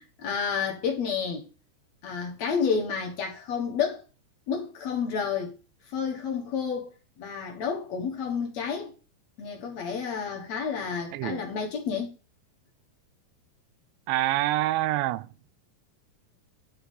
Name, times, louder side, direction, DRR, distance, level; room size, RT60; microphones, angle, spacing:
voice 1, 0.0-1.4 2.0-4.0 4.5-5.6 5.9-8.9 9.4-12.2, left 6 dB, 65° left, 1.8 m, -30 dB
voice 2, 11.1-11.5 14.1-15.3, right 15 dB, 90° right, 2.9 m, -26 dB
10.5 x 4.3 x 5.3 m
omnidirectional pair, 5.1 m